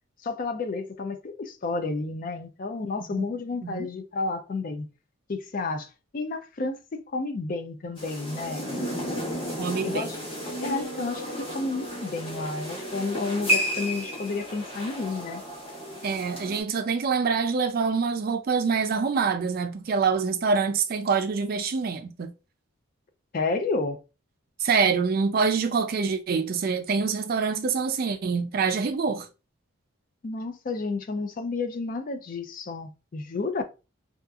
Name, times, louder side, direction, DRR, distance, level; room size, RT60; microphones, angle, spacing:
voice 1, 0.2-4.9 5.3-8.7 9.8-10.2 10.6-15.4 23.3-24.0 30.2-33.6, left 3 dB, 40° left, 0.4 m, -31 dB
sound 1, 8.0-16.6, equal, 25° left, 1.0 m, -32 dB
voice 2, 9.6-10.1 16.0-22.3 24.6-29.3, right 5 dB, 45° right, 0.3 m, -25 dB
2.7 x 2.3 x 2.3 m
head